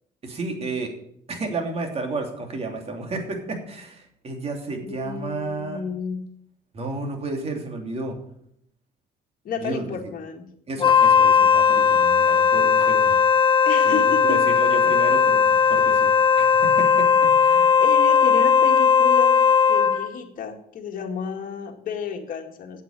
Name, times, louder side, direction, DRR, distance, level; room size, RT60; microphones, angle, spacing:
voice 1, 0.2-0.9 1.3-5.8 6.7-8.1 9.6-10.0 10.7-13.2 13.8-17.1 17.4-17.8, right 3 dB, 35° right, 3 dB, 3.0 m, -32 dB
voice 2, 4.8-6.2 9.4-10.5 13.7-14.4 17.8-19.4 19.7-22.8, left 6 dB, 55° left, 3 dB, 2.1 m, -31 dB
Wind instrument woodwind instrument, 10.8-20.1, left 6 dB, 30° left, 1.6 m, -17 dB
8.4 x 8.1 x 8.9 m, 0.71 s
cardioid pair, 110°, 17 cm